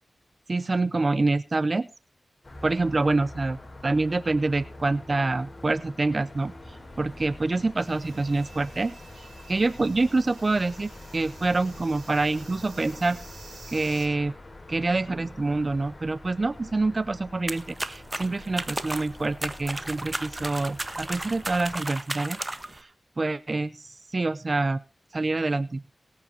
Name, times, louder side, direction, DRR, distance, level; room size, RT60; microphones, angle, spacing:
voice 1, 0.5-1.9 2.6-13.2 13.7-14.3 14.7-22.4 22.7-22.9 23.2-24.8 25.1-25.8, right 3 dB, 45° right, 18 dB, 0.6 m, -26 dB
sound 1, 2.4-21.9, left 2 dB, 40° left, 3.2 m, -45 dB
sound 2, 7.8-14.1, right 4 dB, 80° right, 4.6 m, -50 dB
sound 3, 17.5-22.8, right 1 dB, 25° right, 1.3 m, -34 dB
22.0 x 8.6 x 2.8 m, 0.28 s
cardioid pair, 50°, 0 cm